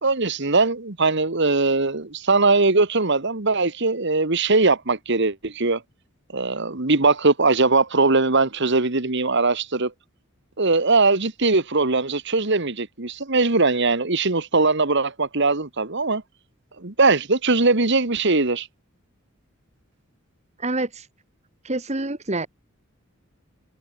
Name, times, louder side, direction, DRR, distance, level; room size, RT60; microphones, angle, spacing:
voice 1, 0.0-5.8 6.3-9.9 10.6-16.2 16.8-18.7, right 3 dB, 55° right, 1.8 m, -20 dB
voice 2, 20.6-21.1 21.6-22.5, right 2 dB, 30° right, 1.9 m, -27 dB
head